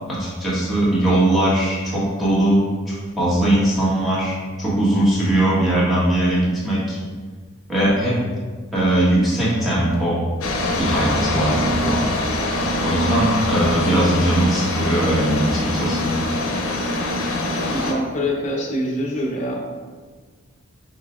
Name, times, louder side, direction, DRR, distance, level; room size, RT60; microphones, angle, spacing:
voice 1, 0.1-7.0 7.7-8.2 8.7-10.2 10.8-12.0 12.8-16.1, right 1 dB, ahead, -10 dB, 1.2 m, -20 dB
sound 1, 10.4-17.9, left 1 dB, 75° left, 0.6 m, -23 dB
voice 2, 17.7-19.6, equal, 35° left, -1 dB, 0.6 m, -25 dB
5.4 x 3.5 x 2.4 m, 1.5 s
head